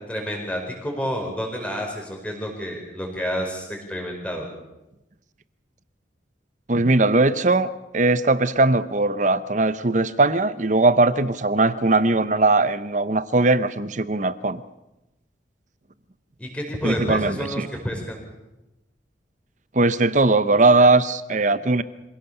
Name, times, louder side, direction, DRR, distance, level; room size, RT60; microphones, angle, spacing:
voice 1, 0.1-4.5 16.4-18.2, equal, 5° left, 1 dB, 4.9 m, -29 dB
voice 2, 6.7-7.7 7.9-14.6 16.8-17.7 19.7-21.8, right 2 dB, 40° right, 15 dB, 0.8 m, -19 dB
25.5 x 17.0 x 6.8 m, 0.97 s
head